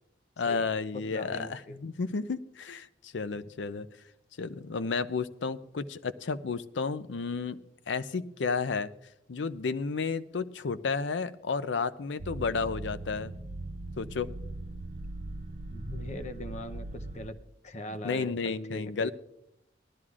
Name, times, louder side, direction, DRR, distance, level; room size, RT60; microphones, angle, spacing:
voice 1, 0.4-3.9 4.4-7.6 7.9-8.9 9.3-13.3 14.0-14.3 18.0-19.1, left 4 dB, 85° left, 14 dB, 0.5 m, -32 dB
voice 2, 1.1-1.8 15.7-19.1, equal, 40° left, 9 dB, 0.7 m, -41 dB
sound 1, 12.2-17.3, right 2 dB, 45° right, 0.5 m, -40 dB
19.0 x 12.5 x 2.4 m, 0.80 s
head